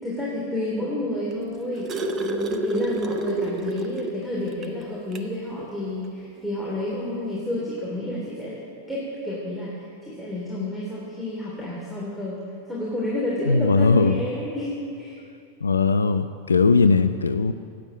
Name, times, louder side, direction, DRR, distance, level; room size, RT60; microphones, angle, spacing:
voice 1, 0.0-1.9 2.2-8.6 8.9-12.4 12.7-15.2, left 1 dB, 5° right, -6 dB, 3.3 m, -30 dB
sound 1, 1.3-4.2 4.6-4.7 5.1-5.3 6.4-6.5, right 2 dB, 30° right, 1.1 m, -28 dB
voice 2, 13.5-14.2 15.6-17.5, left 4 dB, 75° left, 11 dB, 0.5 m, -19 dB
15.5 x 9.0 x 8.9 m, 2.6 s
figure-of-eight pair, 90°, 0 cm